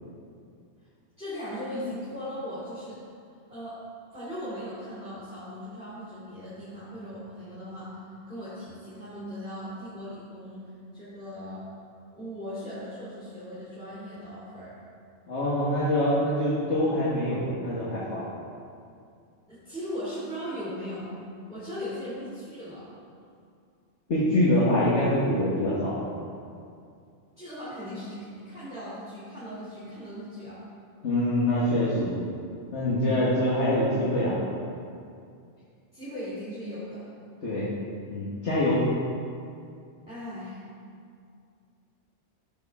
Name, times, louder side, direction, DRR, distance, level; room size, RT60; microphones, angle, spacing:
voice 1, 1.2-3.0 3.5-3.8 4.1-7.9 8.3-11.6 12.1-14.7 19.5-21.1 21.5-22.9 27.4-30.6 35.9-37.1 40.1-40.6, equal, 5° right, -11 dB, 2.5 m, -38 dB
voice 2, 15.3-18.3 24.1-26.0 31.0-32.2 32.7-34.4 37.4-37.7 38.1-38.8, left 1 dB, 75° left, -8 dB, 1.8 m, -25 dB
12.5 x 6.5 x 3.6 m, 2.3 s
omnidirectional pair, 1.2 m